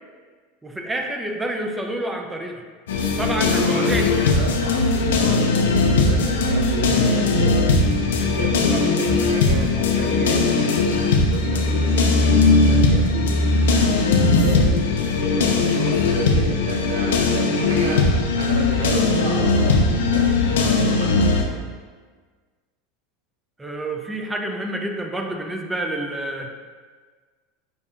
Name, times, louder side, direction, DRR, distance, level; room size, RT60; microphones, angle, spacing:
voice 1, 0.6-2.6 3.2-4.2 8.5-8.8 23.6-26.5, right 1 dB, 10° right, 3 dB, 0.4 m, -28 dB
sound 1, 2.9-21.4, left 3 dB, 90° left, 0.4 m, -19 dB
voice 2, 3.5-7.8 8.2-13.4 14.1-14.7 15.2-21.6, right 2 dB, 80° right, 1 dB, 0.6 m, -32 dB
5.0 x 2.6 x 2.4 m, 1.5 s
supercardioid pair, 110°, 0 cm